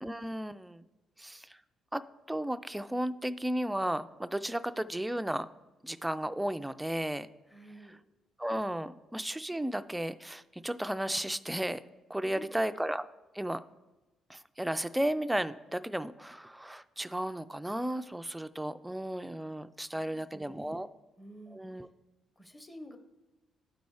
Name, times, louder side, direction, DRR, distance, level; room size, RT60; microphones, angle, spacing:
voice 1, 0.0-0.9 1.2-1.6 1.9-2.0 2.3-5.5 5.8-7.3 8.4-11.8 12.1-13.0 13.3-13.6 14.3-20.9 21.5-21.9, right 1 dB, 5° right, 12 dB, 0.3 m, -34 dB
voice 2, 7.5-8.0 12.2-12.6 19.8-20.9 21.2-21.8 22.4-23.0, equal, 15° left, 7 dB, 0.8 m, -50 dB
11.0 x 4.1 x 4.7 m, 1.1 s
cardioid pair, 90°, 0 cm